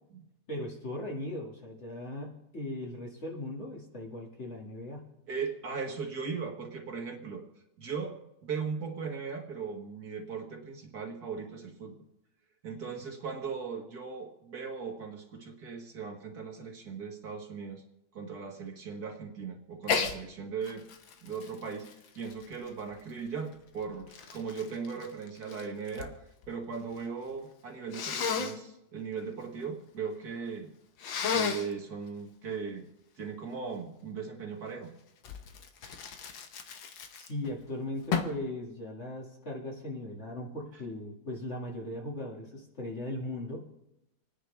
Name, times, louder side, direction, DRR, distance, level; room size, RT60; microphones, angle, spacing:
voice 1, 0.5-5.1 37.1-43.6, left 1 dB, 35° left, -2 dB, 2.4 m, -38 dB
voice 2, 5.3-7.4 7.8-11.9 12.6-17.8 18.1-20.8 21.2-21.9 22.2-26.1 26.5-30.7 31.3-32.8 33.2-34.9, right 5 dB, 55° right, 2 dB, 1.9 m, -38 dB
Sneeze, 19.8-20.2 20.6-23.0 23.7-26.1 26.4-27.0 27.9-28.5 31.0-31.7 35.2-37.5 38.1-38.4, left 6 dB, 80° left, 1.8 m, -33 dB
28.0 x 10.0 x 3.4 m, 0.86 s
omnidirectional pair, 2.0 m